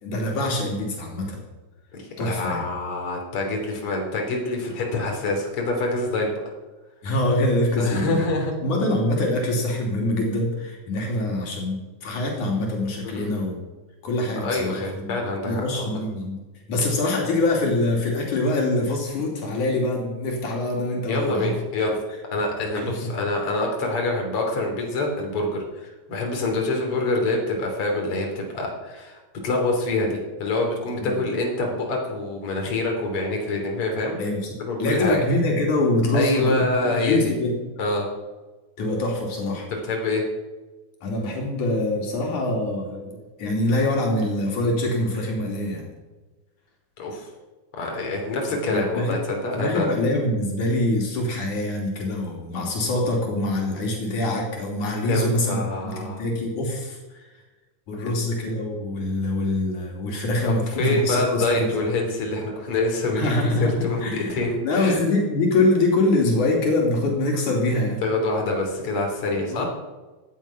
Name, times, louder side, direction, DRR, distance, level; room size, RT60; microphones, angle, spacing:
voice 1, 0.0-1.4 2.2-2.7 7.0-8.2 8.6-13.7 14.0-16.4 16.7-21.5 22.7-23.1 31.0-31.3 34.2-34.5 34.8-37.6 38.8-39.7 41.0-45.9 48.7-49.2 49.5-57.3 57.9-61.7 63.1-68.0 69.5-69.7, left 2 dB, 80° left, 0 dB, 4.3 m, -24 dB
voice 2, 1.9-6.4 7.8-8.5 13.0-13.3 14.4-16.0 21.1-22.0 22.3-34.2 34.7-35.2 36.1-37.3 37.8-38.1 39.7-40.3 47.0-47.3 47.7-49.9 55.1-56.2 58.0-58.2 60.5-63.3 63.6-65.0 68.0-69.7, left 2 dB, 45° left, 1 dB, 3.9 m, -26 dB
17.5 x 12.0 x 5.9 m, 1.2 s
omnidirectional pair, 3.4 m